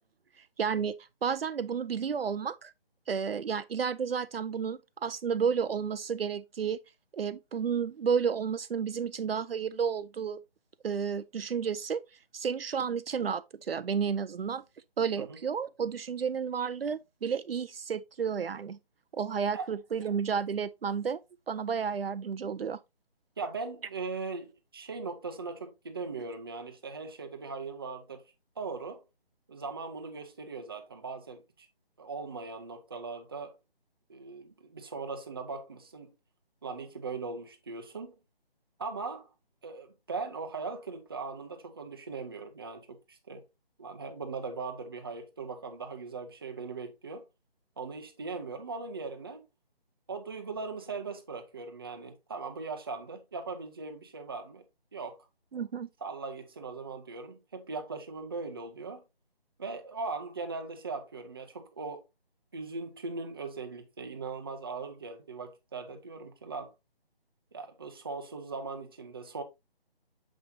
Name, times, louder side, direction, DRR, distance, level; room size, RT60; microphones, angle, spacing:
voice 1, 0.6-1.0 1.2-2.7 3.1-6.8 7.1-10.4 10.8-12.0 12.3-14.6 15.0-18.8 19.1-21.2 21.5-22.8 55.5-55.9, right 6 dB, 70° right, 0.5 m, -31 dB
voice 2, 23.4-28.2 28.6-29.0 29.5-31.7 32.0-33.6 34.1-36.1 36.6-38.1 38.8-39.3 39.6-43.4 43.8-47.3 47.8-49.4 50.1-54.6 54.9-55.2 56.0-59.0 59.6-62.0 62.5-66.7 67.5-69.4, right 4 dB, 25° right, 0.6 m, -39 dB
7.1 x 5.5 x 2.7 m
figure-of-eight pair, 160°, 30 cm